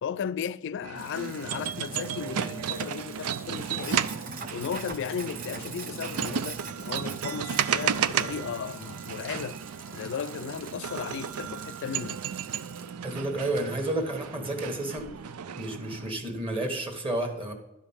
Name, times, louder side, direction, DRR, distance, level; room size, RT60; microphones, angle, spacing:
voice 1, 0.0-4.1 4.5-9.6 9.9-12.2, left 7 dB, 55° left, 0.3 m, -35 dB
sound 1, 0.8-16.1, right 8 dB, 85° right, 0.5 m, -33 dB
Sink (filling or washing), 1.0-12.9, right 5 dB, 40° right, 0.8 m, -44 dB
voice 2, 13.0-15.1 15.5-17.5, right 1 dB, 25° right, 1.4 m, -31 dB
12.0 x 5.1 x 7.1 m
head